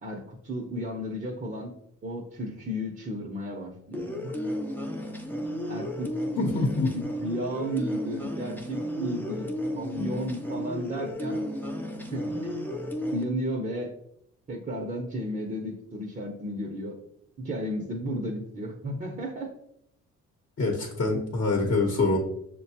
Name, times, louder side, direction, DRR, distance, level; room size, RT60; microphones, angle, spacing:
voice 1, 0.0-1.7 2.0-4.4 5.7-6.1 6.9-9.5 9.7-11.5 12.0-12.5 13.1-13.9 14.5-16.9 17.4-19.5, equal, 30° right, 0 dB, 0.7 m, -34 dB
sound 1, 3.9-13.2, left 1 dB, 5° left, 0.5 m, -33 dB
voice 2, 6.4-6.9 20.6-22.2, left 3 dB, 45° left, 0 dB, 1.0 m, -25 dB
6.4 x 2.2 x 2.8 m, 0.74 s
cardioid pair, 90°, 30 cm